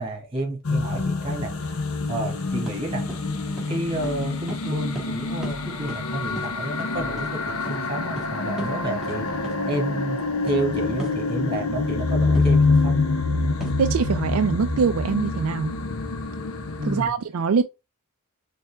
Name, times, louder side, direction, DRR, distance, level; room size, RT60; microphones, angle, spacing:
voice 1, 0.0-1.5 2.1-3.1 3.7-9.2 9.6-10.2 10.4-13.1 16.8-17.1, right 1 dB, 25° right, 1.9 m, -30 dB
sound 1, 0.6-17.1, left 3 dB, 70° left, 0.7 m, -26 dB
sound 2, 2.6-2.8 3.1-3.2 3.6-3.7 4.0-4.2 4.5-4.6 4.9-5.1 5.4-5.6 5.9-6.0 6.3-7.3 7.6-7.8 8.2-8.3 8.6-8.7 9.0-9.2 9.4-9.6 11.0-11.2 12.3-12.5 13.6-13.9, right 2 dB, 5° right, 1.4 m, -37 dB
voice 2, 13.8-15.7 16.8-17.6, right 5 dB, 70° right, 0.4 m, -23 dB
4.3 x 3.3 x 3.3 m
head